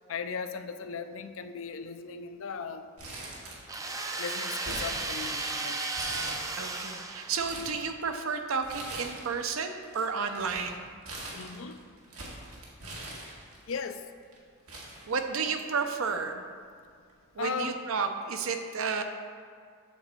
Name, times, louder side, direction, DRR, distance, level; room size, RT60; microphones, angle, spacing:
voice 1, 0.1-2.9 4.2-5.8 11.3-11.8 13.7-14.0 17.4-17.7, left 5 dB, 65° left, 9 dB, 0.5 m, -37 dB
Crumpling crinkling, 3.0-4.0 4.3-5.5 5.9-6.8 7.2-7.8 8.6-9.4 9.7-13.7 14.3-14.4 14.7-15.7 16.0-16.1 17.1-17.3, right 2 dB, 90° right, 1.8 m, -42 dB
sound 1, 3.7-7.8, right 3 dB, 15° right, 0.4 m, -34 dB
voice 2, 6.6-10.9 15.1-16.4 17.4-19.0, right 5 dB, 70° right, 6 dB, 0.6 m, -32 dB
8.4 x 4.1 x 6.8 m, 2.1 s
head